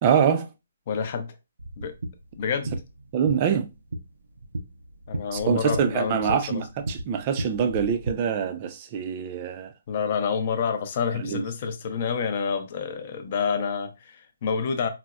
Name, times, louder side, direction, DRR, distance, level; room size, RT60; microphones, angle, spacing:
voice 1, 0.0-0.5 3.1-3.7 5.3-9.7 11.1-11.4, right 7 dB, 25° right, 0.4 m, -24 dB
voice 2, 0.9-1.3 1.8-1.9 2.4-2.7 5.1-6.6 9.9-14.9, left 6 dB, 35° left, 0.5 m, -28 dB
sound 1, 1.6-8.1, right 1 dB, 90° right, 0.5 m, -35 dB
4.0 x 2.0 x 2.3 m
hypercardioid pair, 165°, 0 cm